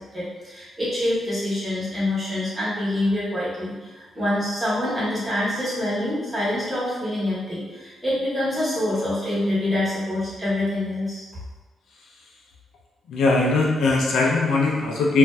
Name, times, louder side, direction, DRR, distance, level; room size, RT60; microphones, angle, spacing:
voice 1, 0.1-11.2, left 1 dB, 10° right, -9 dB, 1.1 m, -26 dB
voice 2, 13.1-15.2, left 3 dB, 80° left, -2 dB, 0.5 m, -20 dB
2.6 x 2.2 x 3.2 m, 1.3 s
cardioid pair, 140°, 0 cm